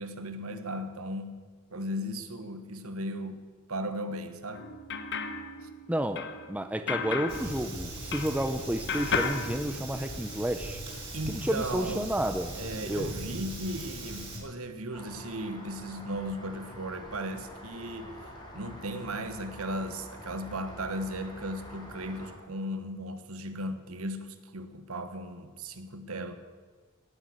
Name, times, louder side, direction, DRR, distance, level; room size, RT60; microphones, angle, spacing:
voice 1, 0.0-1.4 1.7-3.4 3.7-4.8 5.6-5.7 11.1-12.1 12.6-18.1 18.5-26.4, right 1 dB, 70° right, 9 dB, 1.4 m, -36 dB
sound 1, 4.5-8.6 8.9-10.4, left 4 dB, 50° left, 1.2 m, -35 dB
voice 2, 5.9-10.8 11.3-12.6 12.9-13.1, right 1 dB, 5° right, 9 dB, 0.6 m, -31 dB
Fire, 7.3-14.4, right 1 dB, 25° right, 5.4 m, -40 dB
Rain, 14.9-22.3, left 1 dB, 20° left, 4.0 m, -46 dB
17.5 x 9.5 x 7.9 m, 1.5 s
head